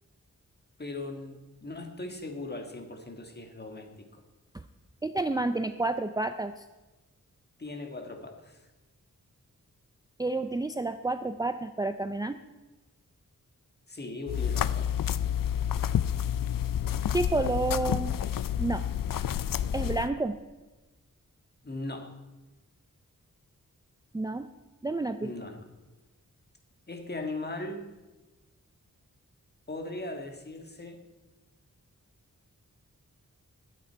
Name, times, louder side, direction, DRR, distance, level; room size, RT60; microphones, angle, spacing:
voice 1, 0.8-4.2 7.6-8.6 13.9-14.9 21.6-22.1 25.2-25.6 26.9-27.9 29.7-31.0, left 2 dB, 30° left, 4 dB, 1.7 m, -39 dB
voice 2, 5.0-6.6 10.2-12.4 17.1-18.2 18.6-18.9 19.7-20.4 24.1-24.5 24.8-25.3, right 2 dB, 10° right, 9 dB, 0.4 m, -30 dB
sound 1, 14.3-20.1, left 9 dB, 80° left, 0.5 m, -29 dB
21.0 x 9.2 x 4.6 m, 1.2 s
wide cardioid pair, 125°, 33 cm